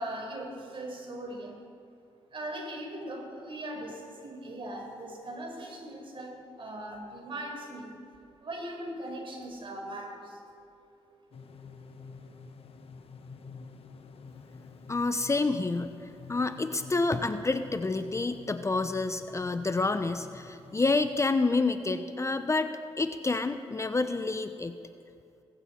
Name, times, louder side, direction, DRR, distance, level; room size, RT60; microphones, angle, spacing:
voice 1, 0.0-1.6 2.3-7.9 8.4-10.6, right 1 dB, 50° right, 1 dB, 4.7 m, -39 dB
sound 1, 11.3-21.2, left 4 dB, 60° left, 1.3 m, -49 dB
voice 2, 14.9-15.9 16.3-24.8, left 3 dB, 25° left, 10 dB, 0.8 m, -28 dB
19.5 x 15.5 x 4.5 m, 2.5 s
supercardioid pair, 60°, 11 cm